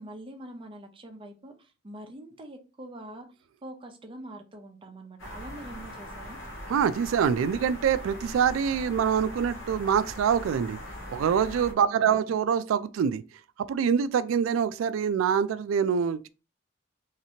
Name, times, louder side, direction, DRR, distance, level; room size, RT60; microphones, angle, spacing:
voice 1, 0.0-3.3 3.6-6.4 11.8-12.1, right 1 dB, 25° right, 0.6 m, -44 dB
sound 1, 5.2-11.7, equal, 75° left, 1.1 m, -41 dB
voice 2, 6.7-10.8 11.1-13.2 13.6-16.3, right 7 dB, 85° right, 0.3 m, -25 dB
3.2 x 2.9 x 2.8 m
head